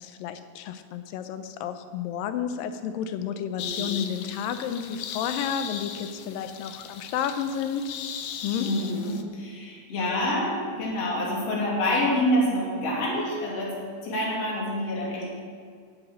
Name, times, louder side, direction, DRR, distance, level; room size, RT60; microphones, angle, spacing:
voice 1, 0.0-7.9 8.4-8.7, left 8 dB, 90° left, 9 dB, 2.5 m, -31 dB
voice 2, 3.5-4.1 8.6-13.7 14.0-15.3, left 1 dB, 50° left, -4 dB, 3.6 m, -27 dB
sound 1, 3.6-9.2, left 8 dB, 75° left, 1.7 m, -37 dB
11.0 x 7.9 x 8.7 m, 2.1 s
omnidirectional pair, 3.9 m